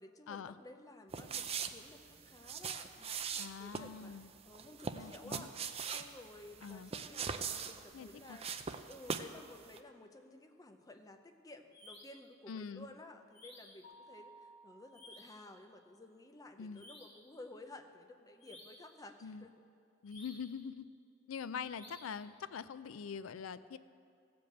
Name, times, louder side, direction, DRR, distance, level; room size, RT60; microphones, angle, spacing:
voice 1, 0.0-8.5 8.9-19.7, left 2 dB, 15° left, 6 dB, 0.6 m, -54 dB
sound 1, 1.1-9.4 9.7-9.8, right 6 dB, 30° right, 0.4 m, -41 dB
voice 2, 3.4-4.3 4.9-5.5 6.6-6.9 7.9-8.4 12.5-12.9 16.6-16.8 19.2-19.5 20.0-20.9 21.3-23.8, left 6 dB, 75° left, 14 dB, 0.4 m, -44 dB
sound 2, 11.7-12.3 13.3-13.9 14.9-15.5 16.7-17.3 18.4-18.9 20.0-20.6 21.7-22.3, left 2 dB, 55° left, 2.9 m, -56 dB
Mallet percussion, 13.8-15.6, right 1 dB, 35° left, 1.1 m, -58 dB
15.5 x 5.3 x 7.8 m, 2.6 s
head